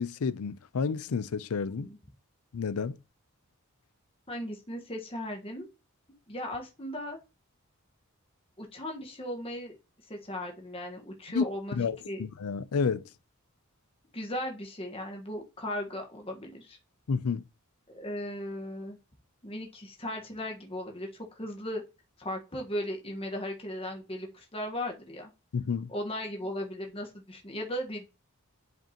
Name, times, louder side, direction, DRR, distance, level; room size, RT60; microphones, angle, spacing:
voice 1, 0.0-1.9 2.5-3.0 11.3-13.0 17.1-17.4 25.5-25.9, left 5 dB, 80° left, 0.5 m, -30 dB
voice 2, 1.7-2.0 4.3-5.7 6.3-7.2 8.6-9.8 10.1-11.8 12.0-12.2 14.1-16.8 17.9-19.0 19.4-21.1 21.3-21.8 22.2-25.3 25.9-28.1, left 1 dB, 25° left, 1.4 m, -37 dB
10.0 x 5.0 x 2.9 m
head